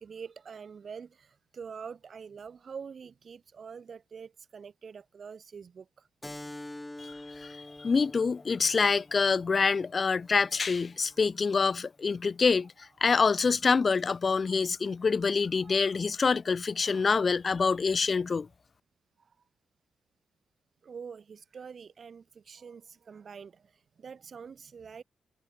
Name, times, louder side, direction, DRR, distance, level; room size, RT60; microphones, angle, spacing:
voice 1, 0.0-6.1 7.0-7.1 11.1-11.2 15.6-16.0 16.8-17.1 17.8-18.0 19.2-19.3 20.8-23.7 24.0-25.0, right 6 dB, 45° right, 0.6 m, -46 dB
Keyboard (musical), 6.2-11.3, left 1 dB, 10° left, 4.6 m, -47 dB
voice 2, 7.0-12.7 13.0-18.5, left 5 dB, 35° left, 0.3 m, -26 dB
cardioid pair, 115°, 0 cm